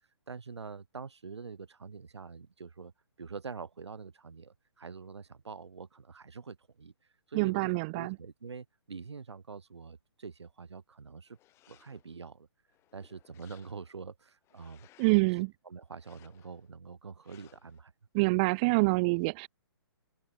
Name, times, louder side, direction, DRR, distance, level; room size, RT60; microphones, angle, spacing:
voice 1, 0.3-2.9 3.2-6.9 7.3-11.4 11.7-12.5 12.9-14.9 15.7-17.9, right 5 dB, 85° right, 2.2 m, -45 dB
voice 2, 7.3-8.2 15.0-15.5 18.1-19.5, right 28 dB, 20° right, 0.4 m, -26 dB
sound 1, 11.3-12.2 12.7-14.0 14.4-15.3 15.9-16.7 17.2-17.8, left 15 dB, 20° left, 4.1 m, -63 dB
hypercardioid pair, 150°, 14 cm